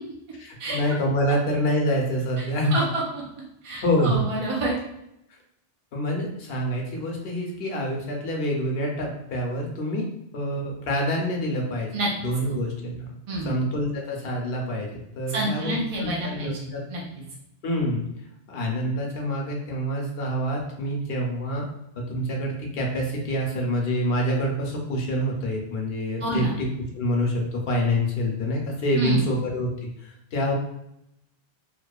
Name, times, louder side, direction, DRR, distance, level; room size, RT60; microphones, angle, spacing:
voice 1, 0.4-2.8 3.8-4.2 5.9-10.1 10.3-11.9 12.2-13.1 13.4-16.8 17.6-18.0 18.5-21.6 22.0-26.7 26.9-30.5, equal, 65° left, 0 dB, 0.8 m, -26 dB
voice 2, 2.7-3.2 3.6-4.8 11.9-12.1 12.5-12.6 13.3-13.6 15.3-17.0 26.2-26.5 28.9-29.3, right 1 dB, 50° right, -3 dB, 0.4 m, -28 dB
2.9 x 2.1 x 2.2 m, 0.82 s
omnidirectional pair, 1.1 m